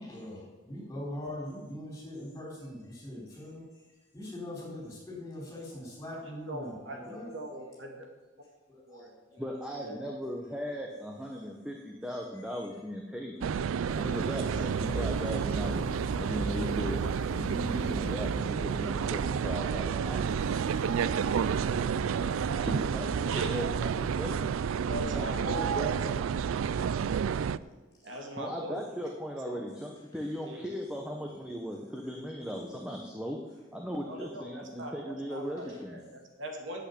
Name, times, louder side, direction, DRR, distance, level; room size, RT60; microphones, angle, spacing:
voice 1, 0.0-3.6 4.1-7.3 8.7-9.4 13.6-13.7 15.8-16.2 18.6-19.0 21.8-22.2 22.5-22.7 32.0-32.8, left 1 dB, 15° left, -4 dB, 4.4 m, -43 dB
voice 2, 6.3-7.9 8.9-9.4 9.8-10.2 23.3-23.5 23.8-24.2 24.8-26.1 28.0-29.1 29.5-29.8 30.4-30.7 34.1-36.8, right 1 dB, 70° right, 2 dB, 2.2 m, -41 dB
voice 3, 9.4-17.0 17.3-20.3 22.6-24.5 25.0-25.3 25.6-26.2 28.2-36.0, equal, 5° right, 1 dB, 0.9 m, -38 dB
sound 1, 13.4-27.6, right 7 dB, 90° right, 0.4 m, -30 dB
sound 2, 13.9-24.6, left 2 dB, 35° left, 0.7 m, -45 dB
9.0 x 8.3 x 8.4 m, 1.2 s
head